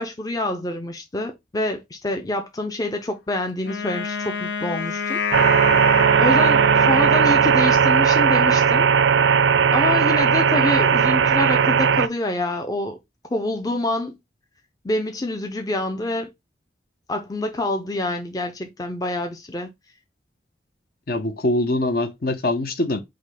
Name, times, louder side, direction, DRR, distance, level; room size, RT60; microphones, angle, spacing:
voice 1, 0.0-5.2 6.2-8.9 9.7-13.0 13.3-14.2 14.8-16.3 17.1-19.7, left 2 dB, 20° left, 0.5 m, -26 dB
Wind instrument woodwind instrument, 3.6-7.9, left 6 dB, 90° left, 0.8 m, -29 dB
sound 1, 5.3-12.1, right 6 dB, 80° right, 0.4 m, -17 dB
voice 2, 21.1-23.0, left 2 dB, 55° left, 0.7 m, -23 dB
5.1 x 2.2 x 4.1 m
head